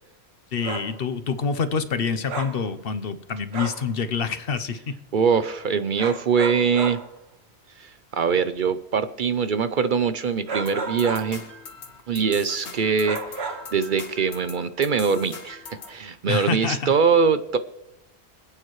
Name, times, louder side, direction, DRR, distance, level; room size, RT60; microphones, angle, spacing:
voice 1, 0.5-5.0 16.3-16.9, left 5 dB, 60° left, 11 dB, 1.0 m, -27 dB
sound 1, 0.6-1.0 2.3-2.7 3.5-3.9 6.0-7.1 10.5-11.4 13.0-13.8, right 4 dB, 75° right, 1.5 m, -32 dB
voice 2, 5.1-7.0 7.8-11.4 12.1-17.6, right 6 dB, 55° right, 12 dB, 0.7 m, -23 dB
sound 2, 10.7-16.0, left 4 dB, 85° left, 1.7 m, -41 dB
26.0 x 8.8 x 3.1 m, 0.87 s
omnidirectional pair, 1.1 m